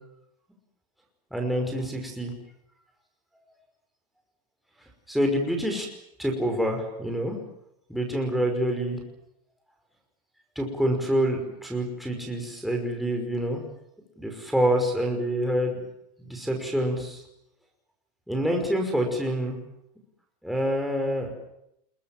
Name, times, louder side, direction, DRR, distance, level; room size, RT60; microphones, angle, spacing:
voice 1, 1.3-2.3 5.1-5.9 6.2-7.4 7.9-9.0 10.6-13.6 14.2-15.8 16.2-17.2 18.3-19.6 20.4-21.3, equal, ahead, 1 dB, 5.5 m, -26 dB
27.0 x 22.5 x 7.5 m, 0.78 s
supercardioid pair, 150°, 20 cm